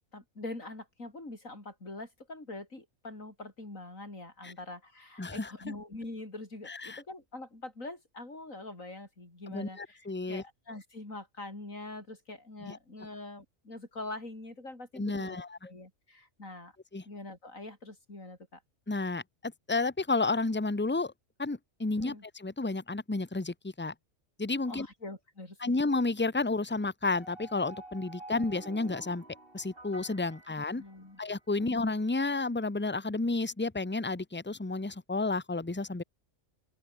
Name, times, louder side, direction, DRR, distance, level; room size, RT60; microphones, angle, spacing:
voice 1, 0.1-16.8 17.0-18.6 22.0-22.2 24.7-25.6 30.7-31.2 31.6-31.8, left 2 dB, 90° left, 6.2 m, -44 dB
voice 2, 5.2-5.5 6.7-7.0 9.5-10.4 12.7-12.8 15.0-15.6 16.9-17.0 18.9-21.1 21.4-23.9 24.4-24.9 25.6-29.2 29.5-30.8 31.2-36.0, left 3 dB, 10° left, 1.0 m, -31 dB
sound 1, 27.1-31.4, right 2 dB, 45° right, 5.0 m, -50 dB
open air
omnidirectional pair, 1.3 m